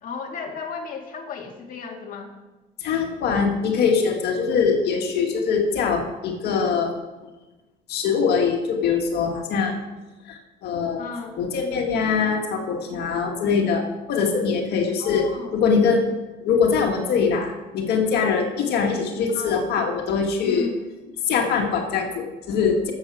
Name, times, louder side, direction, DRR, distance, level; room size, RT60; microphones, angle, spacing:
voice 1, 0.0-2.3 11.0-11.4 15.0-15.5 19.3-19.6 20.4-20.7, left 5 dB, 55° left, 1 dB, 1.9 m, -34 dB
voice 2, 2.8-6.9 7.9-9.8 10.3-11.1 11.4-15.3 15.5-16.1 16.4-20.7 21.3-22.9, left 5 dB, 75° left, 2 dB, 1.9 m, -22 dB
12.0 x 8.1 x 6.3 m, 1.1 s
cardioid pair, 110°, 17 cm